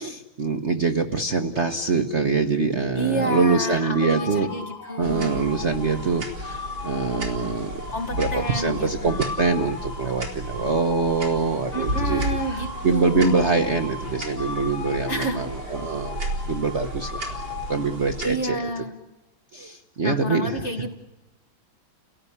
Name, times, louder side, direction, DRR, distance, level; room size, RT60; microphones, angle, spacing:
voice 1, 0.0-4.5 5.0-7.8 8.1-12.2 12.5-16.2 16.5-17.4 17.7-18.8 19.5-20.7, right 4 dB, 40° right, 5 dB, 1.2 m, -24 dB
voice 2, 2.9-5.5 7.9-9.3 11.7-13.5 15.1-15.4 18.2-19.0 20.0-20.9, right 1 dB, 35° left, 4 dB, 2.2 m, -30 dB
sound 1, 3.1-18.4, left 4 dB, 80° left, 3.8 m, -37 dB
sound 2, 5.0-18.4, right 1 dB, 65° right, 4.0 m, -34 dB
29.5 x 17.0 x 9.8 m, 1.1 s
omnidirectional pair, 2.2 m